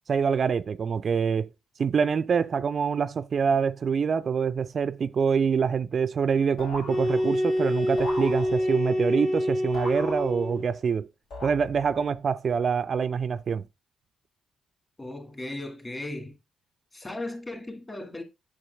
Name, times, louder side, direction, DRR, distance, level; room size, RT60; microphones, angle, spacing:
voice 1, 0.1-1.5 1.8-11.1 11.4-13.6, right 6 dB, 50° right, 0.3 m, -25 dB
sound 1, 6.6-7.5 8.0-8.9 9.7-10.8 11.3-12.0, left 1 dB, 80° left, 2.6 m, -40 dB
sound 2, 6.8-10.8, equal, 40° left, 1.2 m, -26 dB
voice 2, 15.0-16.4 16.9-18.2, left 2 dB, 25° left, 2.0 m, -36 dB
8.0 x 6.2 x 2.3 m
supercardioid pair, 70°, 0 cm